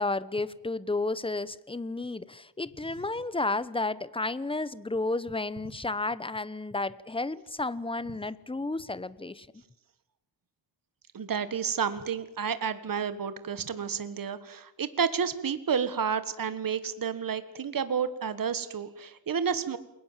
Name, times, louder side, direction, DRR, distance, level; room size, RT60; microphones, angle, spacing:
voice 1, 0.0-9.5, left 2 dB, 10° left, 17 dB, 1.0 m, -32 dB
voice 2, 11.1-19.8, right 6 dB, 45° right, 12 dB, 1.7 m, -30 dB
29.0 x 21.5 x 7.5 m, 0.84 s
cardioid pair, 110°, 46 cm